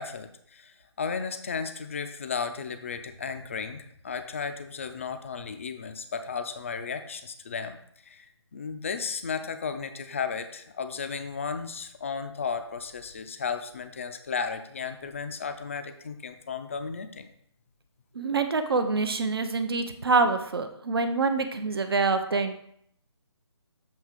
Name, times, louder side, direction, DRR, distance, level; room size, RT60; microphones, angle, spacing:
voice 1, 0.0-7.8 8.0-17.3, left 5 dB, 30° left, 8 dB, 0.4 m, -34 dB
voice 2, 18.1-22.6, right 4 dB, 55° right, 8 dB, 0.6 m, -26 dB
7.2 x 2.9 x 4.8 m, 0.69 s
figure-of-eight pair, 150°, 15 cm